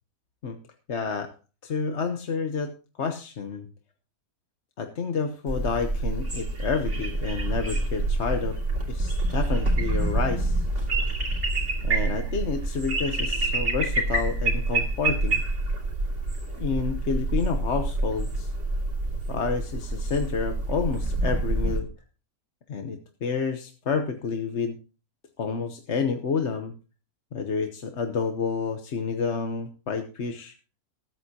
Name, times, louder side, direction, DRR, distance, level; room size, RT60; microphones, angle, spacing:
voice 1, 0.9-1.3 1.6-2.7 3.0-3.7 4.8-8.6 8.9-10.6 11.8-15.4 16.6-18.5 19.3-21.9 22.7-24.8 25.4-26.7 27.3-30.5, left 5 dB, 50° left, 6 dB, 1.2 m, -29 dB
sound 1, 5.5-21.8, right 2 dB, 50° right, 3.2 m, -27 dB
19.5 x 9.1 x 2.9 m, 0.35 s
omnidirectional pair, 1.6 m